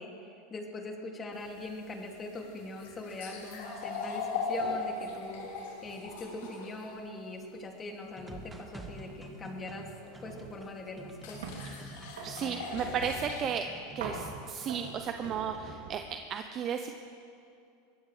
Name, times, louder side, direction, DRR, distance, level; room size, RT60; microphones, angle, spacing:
voice 1, 0.0-9.9 10.2-11.4, left 2 dB, 25° left, 1 dB, 2.5 m, -42 dB
sound 1, 1.3-6.9 10.0-10.1 11.2-13.5, left 4 dB, 75° left, 3.5 m, -39 dB
sound 2, 8.1-15.1 15.5-15.8, right 2 dB, 15° right, 2.1 m, -48 dB
sound 3, 10.2-10.5 10.9-11.7 12.2-13.4 14.0-14.3 14.7-16.1, right 4 dB, 80° right, 2.8 m, -43 dB
voice 2, 12.2-13.6 13.9-16.9, right 7 dB, 40° right, 6 dB, 0.7 m, -34 dB
22.5 x 17.5 x 3.4 m, 2.5 s
hypercardioid pair, 110°, 0 cm